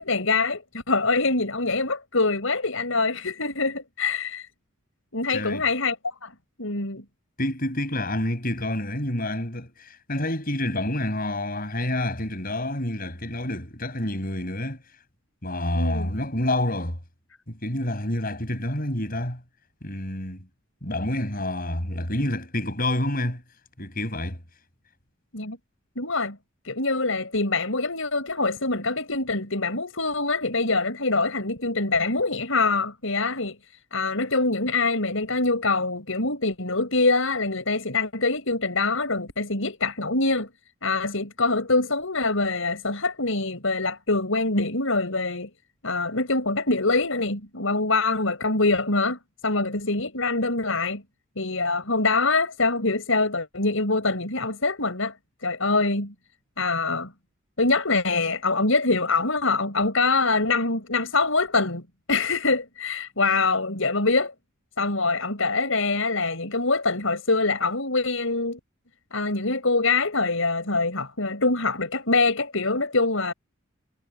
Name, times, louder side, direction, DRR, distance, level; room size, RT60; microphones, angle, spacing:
voice 1, 0.0-4.5 5.1-6.3 6.6-7.0 15.7-16.1 25.3-25.6 26.0-26.4 26.6-33.6 33.9-40.5 40.8-45.5 45.8-51.0 51.4-55.1 55.4-56.1 56.6-57.1 57.6-64.3 64.8-68.6 69.1-73.3, left 3 dB, 70° left, 6.1 m, -24 dB
voice 2, 5.3-5.7 7.4-14.8 15.4-17.0 17.5-19.4 19.8-20.4 20.8-23.4 23.8-24.4, left 1 dB, 45° left, 7.5 m, -28 dB
head